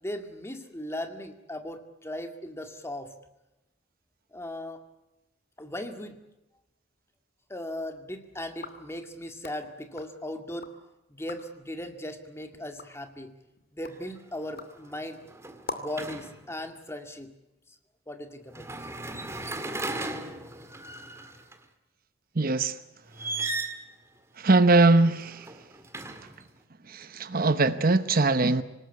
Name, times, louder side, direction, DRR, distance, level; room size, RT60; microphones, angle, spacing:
voice 1, 0.0-3.1 4.3-4.8 5.6-6.2 7.5-10.7 11.1-13.3 13.7-15.2 15.8-17.3 18.1-18.9, left 1 dB, 15° left, 6 dB, 2.0 m, -38 dB
sound 1, 8.5-10.8 11.1-11.6 12.1-16.1, left 3 dB, 50° left, 2.6 m, -45 dB
sound 2, 13.9-14.2 14.5-16.6 18.5-21.6 23.1-23.9 25.1-26.5, right 2 dB, 15° right, 1.9 m, -36 dB
voice 2, 22.4-22.8 24.4-25.5 26.9-28.6, right 3 dB, 45° right, 12 dB, 0.9 m, -21 dB
26.0 x 19.5 x 8.4 m, 0.96 s
head